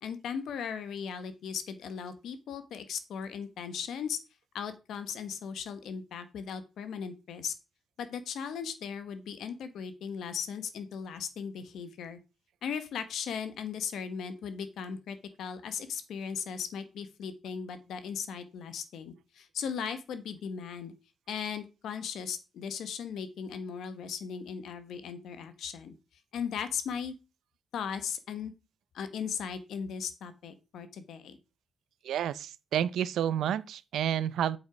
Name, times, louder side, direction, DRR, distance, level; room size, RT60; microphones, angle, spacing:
voice 1, 0.0-4.2 4.5-7.5 8.0-12.2 12.6-20.9 21.3-25.9 26.3-27.2 27.7-28.5 28.9-31.4, left 7 dB, 80° left, 1.2 m, -37 dB
voice 2, 32.0-34.6, right 10 dB, 85° right, 0.5 m, -30 dB
8.1 x 5.4 x 5.1 m
cardioid pair, 150°, 0 cm